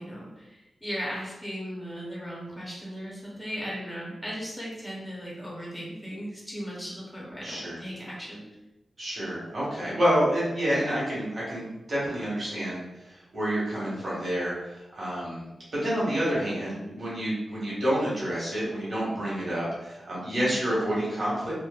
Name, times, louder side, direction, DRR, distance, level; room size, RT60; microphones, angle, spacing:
voice 1, 0.0-8.4 20.3-20.7, equal, ahead, -5 dB, 0.6 m, -37 dB
voice 2, 7.4-7.8 9.0-15.4 15.8-21.5, equal, 40° right, -8 dB, 1.2 m, -28 dB
2.9 x 2.1 x 2.3 m, 1.0 s
wide cardioid pair, 150°, 0 cm